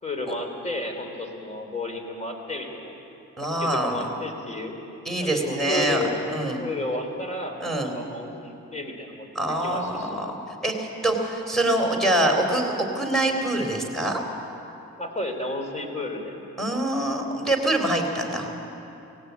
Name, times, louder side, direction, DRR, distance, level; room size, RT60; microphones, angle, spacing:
voice 1, 0.0-3.0 3.6-4.8 5.2-6.2 6.6-10.3 15.0-16.4, left 2 dB, 25° left, 4 dB, 3.6 m, -32 dB
voice 2, 3.4-4.0 5.1-6.6 7.6-7.9 9.3-10.4 10.6-14.2 16.6-18.5, right 1 dB, ahead, 1 dB, 3.9 m, -25 dB
18.5 x 17.0 x 8.4 m, 2.9 s
cardioid pair, 90°, 30 cm